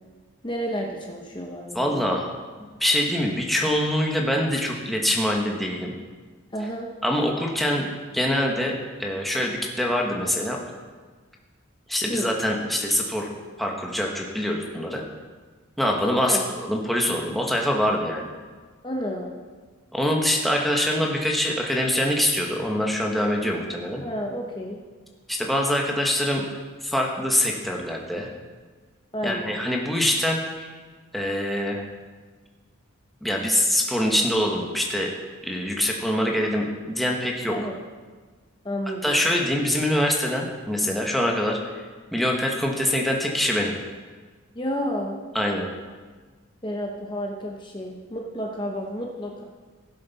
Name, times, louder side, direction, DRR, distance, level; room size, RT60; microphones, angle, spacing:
voice 1, 0.4-2.1 6.5-6.9 12.1-12.3 16.2-16.5 18.8-19.3 24.0-24.8 29.1-29.6 37.5-37.8 38.6-39.2 44.5-45.2 46.6-49.4, equal, 20° left, 0 dB, 0.9 m, -31 dB
voice 2, 1.7-2.3 2.8-5.9 7.0-10.6 11.9-13.3 13.6-15.0 15.8-18.3 19.9-24.0 25.3-26.4 26.8-28.3 29.2-30.7 31.1-31.8 33.2-35.1 35.4-37.5 39.0-41.8 42.1-43.7 45.3-45.7, left 1 dB, ahead, -1 dB, 1.1 m, -24 dB
16.5 x 7.4 x 4.1 m, 1.4 s
head